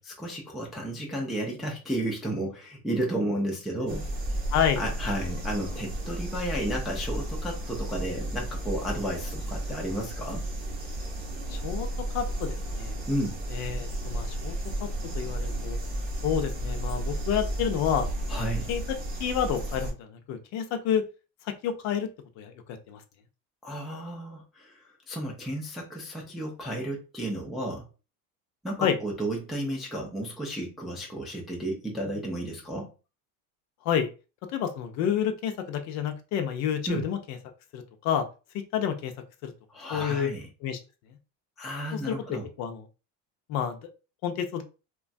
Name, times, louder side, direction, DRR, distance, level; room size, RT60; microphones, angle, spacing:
voice 1, 0.0-4.1 4.8-10.4 13.1-13.4 18.3-18.7 23.6-27.9 28.6-32.9 36.9-37.0 39.7-40.5 41.6-42.5, right 1 dB, ahead, -1 dB, 0.3 m, -32 dB
sound 1, 3.9-19.9, right 1 dB, 25° right, 0.7 m, -33 dB
voice 2, 4.5-4.8 11.5-11.9 12.1-13.0 13.5-14.5 14.8-14.9 15.1-15.8 16.2-18.1 18.4-18.8 19.2-21.0 21.6-22.1 22.4-22.5 22.9-23.0 28.8-29.0 33.8-34.1 34.5-37.2 37.7-38.2 38.5-39.1 39.4-39.5 39.9-40.3 40.6-40.8 41.9-42.8 43.5-43.8 44.2-44.6, left 8 dB, 50° left, 7 dB, 0.5 m, -29 dB
2.9 x 2.3 x 2.5 m, 0.32 s
supercardioid pair, 140°, 36 cm